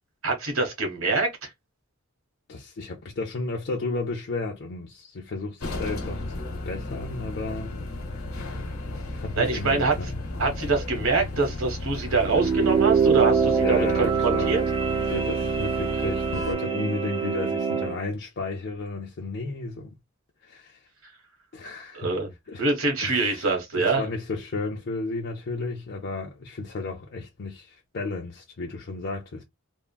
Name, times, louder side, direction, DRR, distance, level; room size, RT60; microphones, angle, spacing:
voice 1, 0.2-1.5 9.4-9.9 10.4-14.6 21.9-22.3 22.6-24.0, right 3 dB, 75° right, 1.2 m, -25 dB
voice 2, 2.5-6.2 6.7-7.7 9.1-10.1 13.6-14.5 15.1-19.9 20.4-20.9 21.5-22.1 22.5-22.6 23.0-29.4, left 3 dB, 55° left, 0.5 m, -33 dB
sound 1, 5.6-16.5, left 2 dB, 90° left, 1.0 m, -34 dB
sound 2, 12.2-18.0, right 6 dB, 25° right, 0.6 m, -24 dB
3.5 x 2.0 x 2.2 m
head